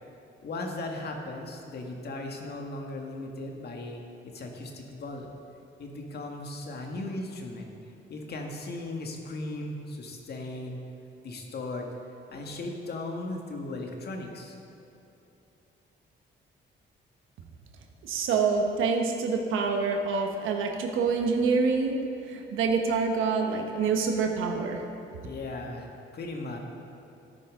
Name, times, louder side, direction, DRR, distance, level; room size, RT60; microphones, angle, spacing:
voice 1, 0.4-5.3 5.8-7.7 8.1-10.8 11.2-11.9 12.3-14.6 25.2-26.6, left 2 dB, 55° left, 1 dB, 1.7 m, -37 dB
voice 2, 18.0-22.0 22.3-24.9, right 4 dB, 90° right, 3 dB, 1.2 m, -26 dB
13.5 x 9.8 x 3.8 m, 2.8 s
cardioid pair, 90°, 20 cm